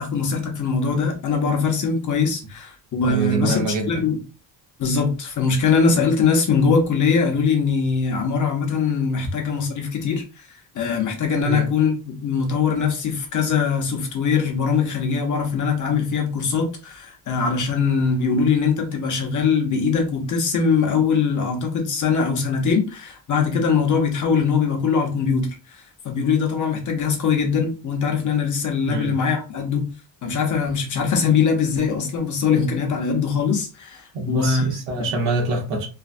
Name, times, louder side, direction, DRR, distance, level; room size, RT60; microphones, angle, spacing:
voice 1, 0.0-4.2 4.8-10.4 10.7-29.8 30.2-34.7, left 5 dB, 45° left, 2 dB, 0.8 m, -22 dB
voice 2, 3.1-4.1 11.4-11.7 28.8-29.1 34.1-35.9, right 2 dB, 80° right, 1 dB, 1.1 m, -25 dB
3.2 x 2.2 x 2.5 m, 0.34 s
cardioid pair, 165°, 44 cm